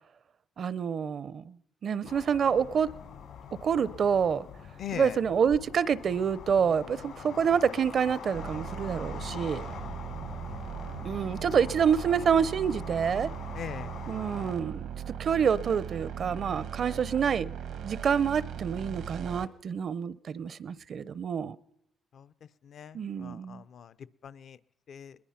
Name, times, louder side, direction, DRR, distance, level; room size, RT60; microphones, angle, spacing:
voice 1, 0.6-1.5 1.8-2.9 3.6-4.4 4.9-9.6 11.0-13.3 14.1-14.9 15.2-17.5 17.8-21.6 22.9-23.6, right 7 dB, 55° right, 0.7 m, -27 dB
sound 1, 2.0-14.6, left 7 dB, 85° left, 5.6 m, -44 dB
voice 2, 4.8-5.2 13.5-13.9 22.1-22.3 22.6-23.9 24.2-24.6 24.9-25.2, left 8 dB, 60° left, 0.7 m, -40 dB
sound 2, 8.3-19.5, right 8 dB, 80° right, 1.3 m, -39 dB
22.0 x 20.5 x 5.8 m
cardioid pair, 90°, 0 cm